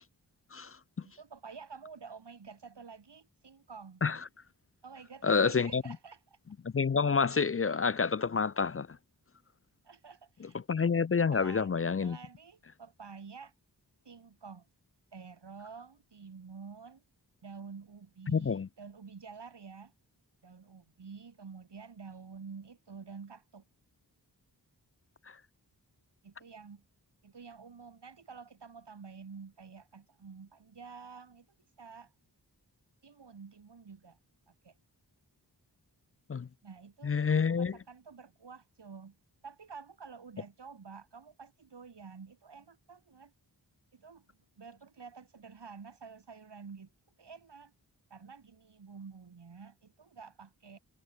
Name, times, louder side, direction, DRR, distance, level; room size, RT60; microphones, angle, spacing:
voice 1, 1.0-4.1 4.8-6.4 9.8-10.9 11.3-11.7 12.0-13.5 14.0-14.7 15.1-17.0 17.4-19.9 20.4-23.7 26.2-26.8 27.2-31.5 31.8-32.1 33.0-34.2 34.5-34.7 36.6-39.2 39.4-43.3 43.9-44.3 44.6-46.9 47.2-47.7 48.1-50.8, right 5 dB, 90° right, 7.9 m, -49 dB
voice 2, 5.2-5.8 6.6-8.9 10.7-12.2 18.3-18.7 36.3-36.5 37.0-37.8, left 5 dB, 35° left, 0.5 m, -28 dB
wide cardioid pair, 90°, 40 cm